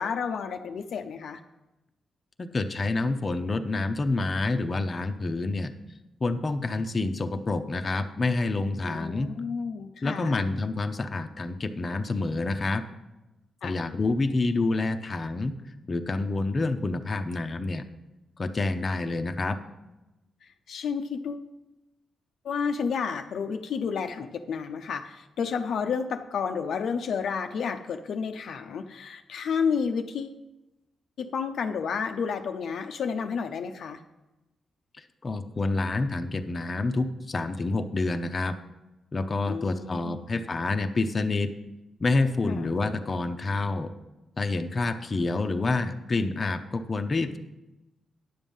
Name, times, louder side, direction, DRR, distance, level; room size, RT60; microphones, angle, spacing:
voice 1, 0.0-1.4 8.8-10.4 13.6-13.8 20.7-21.5 22.4-30.4 31.2-34.0 39.5-40.2 42.4-42.7, left 6 dB, 75° left, 6 dB, 0.6 m, -31 dB
voice 2, 2.4-5.7 6.2-9.3 10.0-12.8 13.6-15.6 15.9-17.8 18.4-19.6 35.0-38.6 39.1-41.5 42.0-43.9 44.4-47.4, left 3 dB, 35° left, 6 dB, 0.7 m, -28 dB
10.5 x 7.2 x 5.4 m, 1.0 s
cardioid pair, 90°, 0 cm